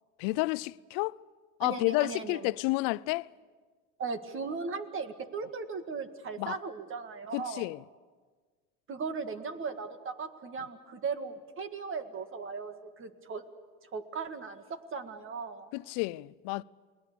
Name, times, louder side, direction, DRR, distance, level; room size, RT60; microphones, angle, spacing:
voice 1, 0.2-1.2 1.6-3.3 6.4-6.6 7.3-7.8 15.7-16.6, left 22 dB, 65° left, 0.6 m, -30 dB
voice 2, 1.6-2.5 4.0-7.7 8.9-13.4 13.9-15.7, right 5 dB, 30° right, 1.9 m, -37 dB
29.5 x 20.5 x 6.9 m
supercardioid pair, 125°, 39 cm